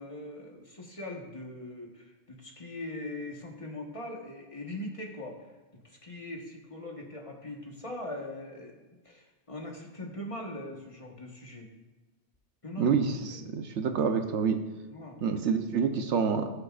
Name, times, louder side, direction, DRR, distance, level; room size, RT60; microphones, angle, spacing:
voice 1, 0.0-5.5 5.8-11.7 12.6-13.0 13.3-13.4 14.9-15.2, left 1 dB, 30° left, 0 dB, 1.3 m, -41 dB
voice 2, 12.8-14.6 15.2-16.5, right 6 dB, 85° right, 7 dB, 1.1 m, -27 dB
18.0 x 6.7 x 2.4 m, 1.2 s
omnidirectional pair, 1.2 m